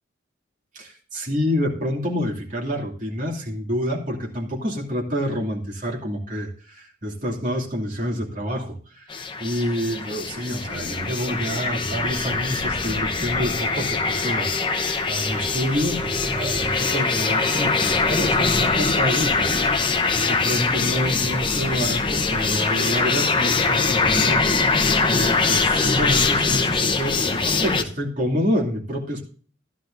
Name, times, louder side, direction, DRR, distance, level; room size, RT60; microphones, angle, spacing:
voice 1, 0.7-9.1 9.4-19.5 19.9-24.4 25.0-29.2, equal, 45° right, -1 dB, 2.6 m, -27 dB
sound 1, 9.1-27.8, left 4 dB, 25° left, 0.8 m, -23 dB
Wind instrument woodwind instrument, 15.1-20.9, right 1 dB, 15° right, 0.8 m, -36 dB
14.0 x 11.5 x 2.6 m, 0.42 s
head